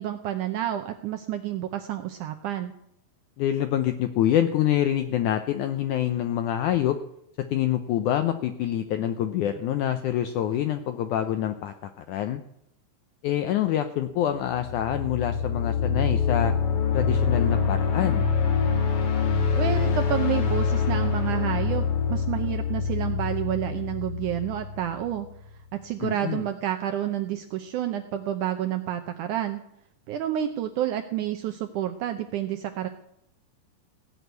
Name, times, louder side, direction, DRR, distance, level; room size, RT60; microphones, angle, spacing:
voice 1, 0.0-2.7 19.5-25.3 25.7-29.6 30.1-32.9, right 11 dB, 80° right, 6 dB, 1.8 m, -29 dB
voice 2, 3.4-7.0 7.5-12.4 13.2-16.5 16.9-18.2 26.0-26.5, left 11 dB, 90° left, 9 dB, 1.8 m, -26 dB
sound 1, 14.5-25.3, left 6 dB, 60° left, 1.5 m, -25 dB
16.5 x 6.2 x 9.3 m, 0.75 s
omnidirectional pair, 4.4 m